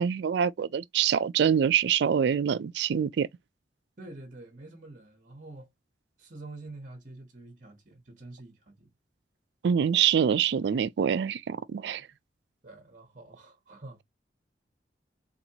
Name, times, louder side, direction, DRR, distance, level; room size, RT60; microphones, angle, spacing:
voice 1, 0.0-3.3 9.6-12.1, right 8 dB, 65° right, 0.3 m, -25 dB
voice 2, 4.0-5.7 6.2-8.9 12.6-14.0, right 2 dB, 45° right, 1.0 m, -47 dB
4.2 x 2.6 x 2.7 m
head